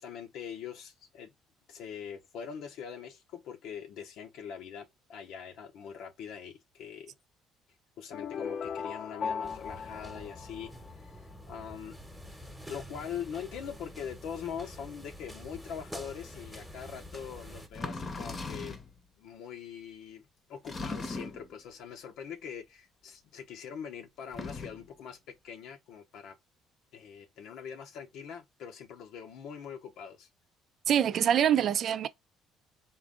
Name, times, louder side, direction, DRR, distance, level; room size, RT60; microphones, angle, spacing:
voice 1, 0.0-1.3 1.7-7.1 8.0-12.0 12.7-18.8 19.2-26.4 26.9-30.3, left 7 dB, 75° left, 0.7 m, -43 dB
sound 1, 8.1-11.2, left 6 dB, 50° left, 0.3 m, -37 dB
sound 2, 9.4-17.7, equal, ahead, 1.0 m, -47 dB
sound 3, 17.7-18.9 20.6-21.5 24.2-24.9, left 3 dB, 30° left, 0.8 m, -38 dB
voice 2, 30.9-32.1, right 9 dB, 55° right, 0.4 m, -25 dB
3.8 x 2.5 x 3.7 m
cardioid pair, 105°, 0 cm